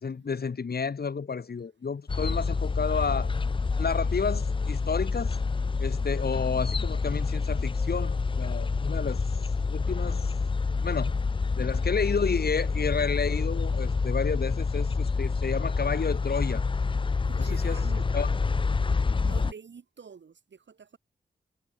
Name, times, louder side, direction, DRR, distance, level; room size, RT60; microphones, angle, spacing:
voice 1, 0.0-3.3 3.8-5.4 5.8-9.2 9.7-10.5 10.8-11.1 11.5-16.6 17.4-17.8 18.1-18.3, left 5 dB, 55° left, 1.4 m, -31 dB
sound 1, 2.1-19.5, left 4 dB, 25° left, 0.5 m, -27 dB
voice 2, 17.3-18.1 19.2-21.0, right 6 dB, 70° right, 2.9 m, -46 dB
cardioid pair, 45°, 19 cm